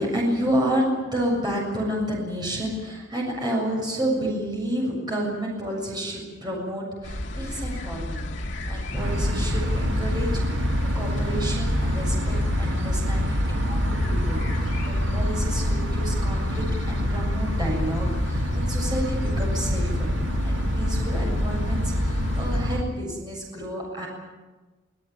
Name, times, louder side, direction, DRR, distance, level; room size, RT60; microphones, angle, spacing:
voice 1, 0.0-8.3 8.6-10.4 10.9-20.1 20.4-24.1, equal, 20° right, -2 dB, 7.3 m, -30 dB
sound 1, 7.0-22.6, left 1 dB, 65° left, 1.7 m, -32 dB
sound 2, 9.0-22.8, equal, 75° right, 1.6 m, -26 dB
25.0 x 17.0 x 8.9 m, 1.3 s
head